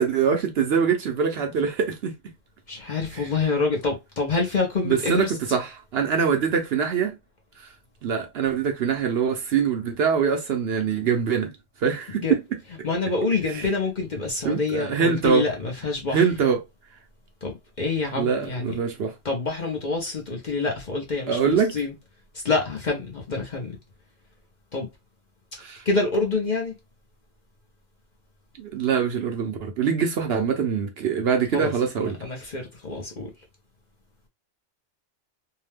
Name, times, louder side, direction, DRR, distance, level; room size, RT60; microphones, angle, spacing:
voice 1, 0.0-2.1 4.8-7.2 8.0-11.5 11.8-12.4 13.5-13.6 14.4-15.4 16.1-16.6 18.1-19.1 21.3-21.7 25.6-25.8 28.6-32.2, right 6 dB, 65° right, 0.8 m, -23 dB
voice 2, 2.7-5.3 12.2-12.3 12.8-16.3 17.4-18.7 19.2-21.9 22.3-23.8 24.7-24.9 25.8-26.7 31.5-31.7 32.0-33.3, left 3 dB, 45° left, 0.8 m, -27 dB
2.8 x 2.2 x 3.2 m
omnidirectional pair, 1.3 m